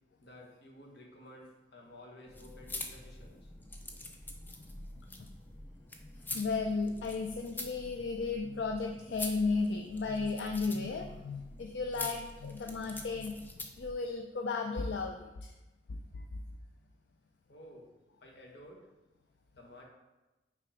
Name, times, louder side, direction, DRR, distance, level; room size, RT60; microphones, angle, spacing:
voice 1, 0.2-3.5 17.5-17.9 18.2-18.9 19.5-19.8, left 1 dB, 65° left, -1 dB, 1.2 m, -53 dB
sound 1, 2.3-13.9, left 2 dB, 10° left, 0.5 m, -45 dB
voice 2, 6.3-13.3 13.8-15.5 15.9-16.0, left 4 dB, 80° left, 3 dB, 0.4 m, -34 dB
5.9 x 3.5 x 4.9 m, 1.1 s
head